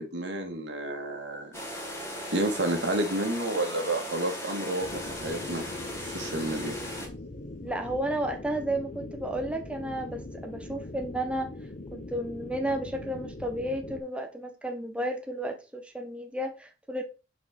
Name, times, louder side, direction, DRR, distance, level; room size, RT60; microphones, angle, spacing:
voice 1, 0.0-1.5 2.3-5.6 6.0-6.8, right 1 dB, 80° right, 1.9 m, -30 dB
sound 1, 1.5-7.1, left 1 dB, 15° left, 2.4 m, -37 dB
sound 2, 4.8-14.0, left 2 dB, 50° left, 0.9 m, -41 dB
voice 2, 7.6-11.5 11.9-17.0, right 1 dB, 5° right, 0.9 m, -32 dB
6.0 x 4.4 x 5.8 m
head